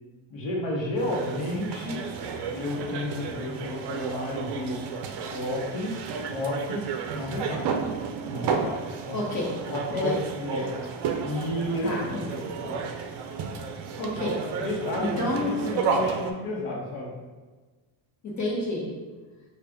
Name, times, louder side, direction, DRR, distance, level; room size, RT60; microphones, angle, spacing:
voice 1, 0.3-2.1 2.5-4.8 5.3-5.9 6.3-7.7 8.2-8.8 9.0-9.2 9.7-10.8 11.2-12.9 14.6-17.1, left 1 dB, 65° left, -2 dB, 1.1 m, -32 dB
sound 1, 1.0-16.3, right 5 dB, 60° right, 0.5 m, -32 dB
voice 2, 9.1-9.5 9.9-10.2 11.8-12.2 14.0-14.6 14.9-15.8 18.2-18.9, left 1 dB, 35° left, -3 dB, 1.1 m, -29 dB
5.2 x 2.5 x 3.4 m, 1.3 s
cardioid pair, 165°, 49 cm